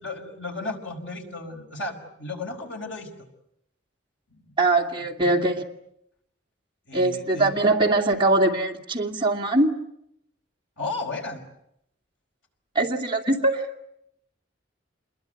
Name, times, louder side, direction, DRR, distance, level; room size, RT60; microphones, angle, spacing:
voice 1, 0.0-3.1 4.3-4.5 6.9-7.5 10.8-11.4, left 2 dB, 75° left, 3 dB, 5.2 m, -34 dB
voice 2, 4.6-5.6 6.9-9.7 12.7-13.7, right 2 dB, 25° right, 0 dB, 2.5 m, -22 dB
27.5 x 22.0 x 9.4 m, 0.78 s
head